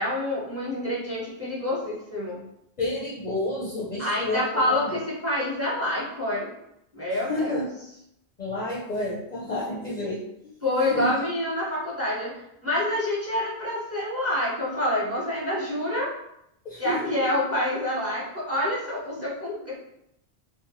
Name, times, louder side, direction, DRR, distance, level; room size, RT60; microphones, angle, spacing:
voice 1, 0.0-2.4 4.0-6.5 6.9-7.6 10.6-12.3 12.6-16.1 16.8-19.7, left 1 dB, 15° right, -6 dB, 0.6 m, -27 dB
voice 2, 2.8-5.0 7.1-7.7 8.4-10.6 10.9-11.1 16.6-17.3, left 1 dB, 50° left, -6 dB, 0.6 m, -30 dB
2.6 x 2.1 x 2.9 m, 0.79 s
omnidirectional pair, 1.1 m